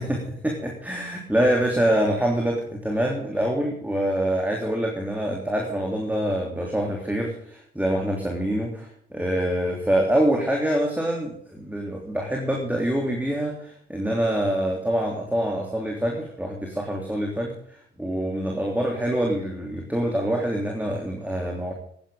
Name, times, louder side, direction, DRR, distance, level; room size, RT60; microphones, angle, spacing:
voice 1, 0.0-21.7, right 1 dB, 5° right, 0 dB, 3.3 m, -25 dB
18.0 x 10.5 x 3.8 m, 0.65 s
figure-of-eight pair, 50°, 31 cm